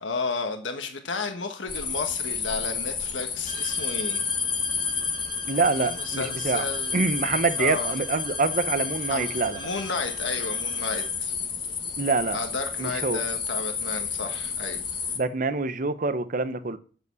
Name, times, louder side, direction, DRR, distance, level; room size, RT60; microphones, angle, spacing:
voice 1, 0.0-4.2 5.8-7.0 7.6-7.9 9.1-11.3 12.3-14.8, left 4 dB, 85° left, 1.4 m, -32 dB
sound 1, 1.7-15.2, left 6 dB, 25° left, 1.4 m, -31 dB
sound 2, 3.5-11.2, right 1 dB, 30° right, 2.2 m, -41 dB
voice 2, 5.5-6.6 6.9-9.6 12.0-12.4 12.8-13.2 15.2-16.8, right 3 dB, 45° right, 0.8 m, -26 dB
7.9 x 6.8 x 8.2 m
head